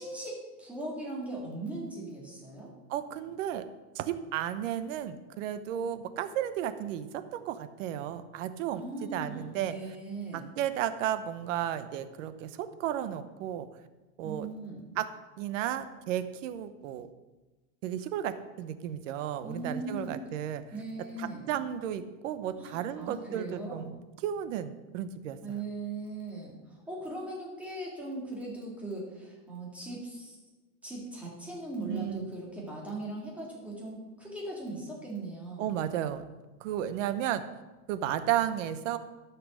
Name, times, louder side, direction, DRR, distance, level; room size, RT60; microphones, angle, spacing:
voice 1, 0.0-2.7 8.7-10.4 14.2-14.8 19.4-20.1 20.7-21.4 22.6-23.9 25.4-30.4 30.8-35.7, right 2 dB, 5° right, -4 dB, 2.1 m, -39 dB
voice 2, 2.9-3.6 3.9-9.8 10.3-13.7 14.2-14.5 15.0-15.1 15.4-17.1 17.8-20.6 21.2-25.6 31.9-32.3 35.6-36.2 36.6-37.4 37.9-39.0, right 11 dB, 60° right, 11 dB, 0.9 m, -33 dB
13.0 x 5.9 x 6.4 m, 1.1 s
supercardioid pair, 175°, 43 cm